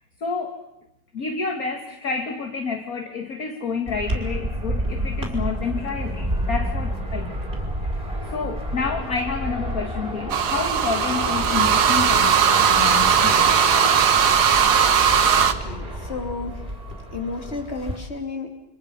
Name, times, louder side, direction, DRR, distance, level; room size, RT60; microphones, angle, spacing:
voice 1, 0.2-0.6 1.1-7.4 7.8-7.9 8.3-13.8, left 5 dB, 55° left, 4 dB, 2.0 m, -29 dB
sound 1, 3.9-18.0, equal, 20° right, 4.4 m, -29 dB
sound 2, 10.3-15.5, right 7 dB, 65° right, 1.6 m, -18 dB
voice 2, 15.4-16.7 17.1-18.5, left 4 dB, 35° left, 4 dB, 3.0 m, -32 dB
29.0 x 25.0 x 5.6 m, 0.84 s
omnidirectional pair, 1.9 m